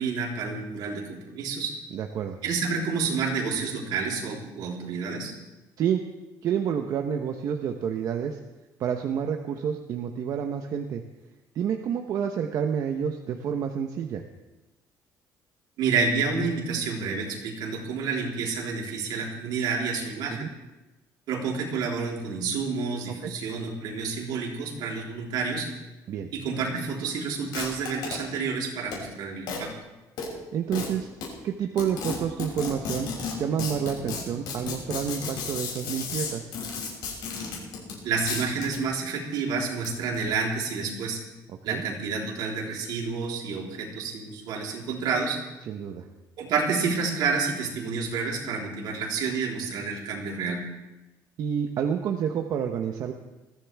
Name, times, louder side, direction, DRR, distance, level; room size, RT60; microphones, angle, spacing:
voice 1, 0.0-1.7 2.4-5.3 15.8-20.5 21.3-25.7 26.3-29.7 38.0-41.2 41.6-45.4 46.4-50.6, right 5 dB, 75° right, -2 dB, 3.7 m, -29 dB
voice 2, 1.9-2.4 5.8-6.0 6.4-8.4 8.8-11.0 11.5-14.2 20.4-20.5 23.2-23.3 26.1-26.3 30.5-31.1 31.4-33.1 33.4-36.6 41.5-41.9 45.6-46.1 51.4-53.1, right 8 dB, 55° right, 4 dB, 0.9 m, -29 dB
sound 1, 27.5-28.1 28.9-29.0 29.5-29.6 30.2-30.3 30.7-30.9 31.2-31.3 31.8-38.0 38.3-38.8 39.7-40.2, left 5 dB, 80° left, 6.6 m, -33 dB
21.0 x 15.0 x 3.5 m, 1.1 s
cardioid pair, 160°, 7 cm